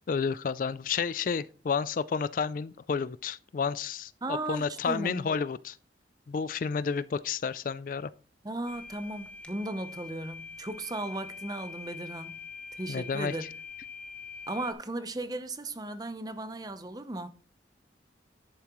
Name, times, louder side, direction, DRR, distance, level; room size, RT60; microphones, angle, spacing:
voice 1, 0.1-5.8 6.3-8.1 12.9-13.3, left 5 dB, 50° left, 0.3 m, -31 dB
voice 2, 4.2-5.3 8.4-12.4 12.7-13.5 14.5-17.3, right 2 dB, 20° right, 0.8 m, -36 dB
sound 1, 8.7-14.7, left 5 dB, 10° left, 1.0 m, -44 dB
10.5 x 8.4 x 3.1 m
head